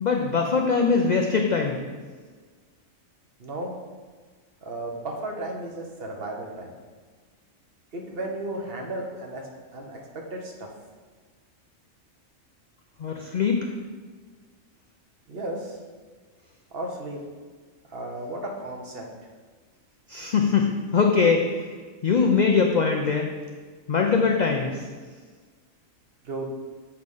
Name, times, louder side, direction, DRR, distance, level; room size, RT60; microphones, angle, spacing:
voice 1, 0.0-1.8 13.0-13.7 20.1-21.7 22.0-23.3 23.9-24.8, left 5 dB, 70° left, 2 dB, 0.4 m, -22 dB
voice 2, 3.4-3.8 4.6-6.7 7.9-10.7 15.3-15.8 16.7-17.2 17.9-19.1 26.2-26.5, right 1 dB, 50° right, 1 dB, 1.0 m, -34 dB
7.2 x 3.2 x 5.3 m, 1.5 s
omnidirectional pair, 1.4 m